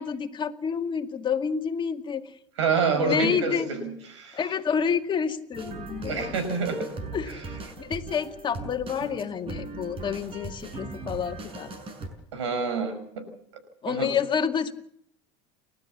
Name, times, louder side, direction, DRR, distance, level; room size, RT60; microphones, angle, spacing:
voice 1, 0.0-2.3 2.9-3.7 4.3-6.3 7.1-7.4 7.8-11.7 13.8-14.7, left 7 dB, 35° left, 5 dB, 2.2 m, -29 dB
voice 2, 2.6-4.4 6.0-6.9 7.3-7.4 12.3-13.2 13.9-14.1, right 4 dB, 85° right, 9 dB, 6.0 m, -27 dB
sound 1, 5.5-12.1, right 3 dB, 40° right, 6.3 m, -39 dB
29.5 x 13.0 x 7.4 m, 0.69 s
hypercardioid pair, 90°, 15 cm